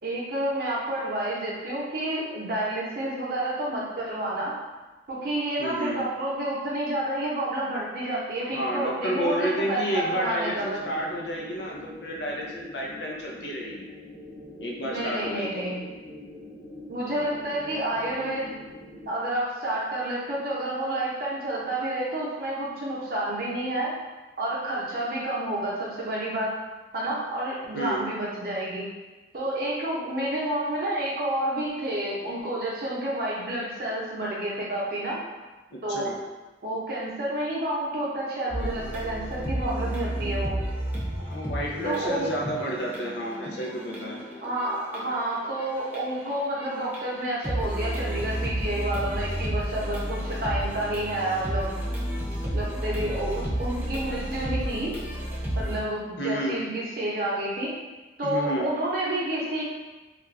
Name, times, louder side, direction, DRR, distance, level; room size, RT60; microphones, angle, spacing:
voice 1, 0.0-4.5 5.1-10.8 14.8-15.8 16.9-18.5 19.1-23.9 24.4-26.5 26.9-28.8 29.3-35.2 35.8-36.1 36.6-40.6 41.8-42.3 44.4-51.8 52.5-54.9 55.6-57.7 58.2-59.6, right 1 dB, 55° right, -6 dB, 0.7 m, -29 dB
voice 2, 5.6-6.0 8.5-13.9 14.6-15.7 27.7-28.1 35.7-36.2 41.2-44.2 56.2-56.6 58.2-58.7, equal, 75° left, -2 dB, 0.5 m, -30 dB
sound 1, 10.5-19.1, left 2 dB, 25° left, 0.6 m, -44 dB
sound 2, 38.5-47.0 47.3-55.8, equal, 10° right, 0.4 m, -32 dB
2.4 x 2.2 x 3.2 m, 1.2 s
head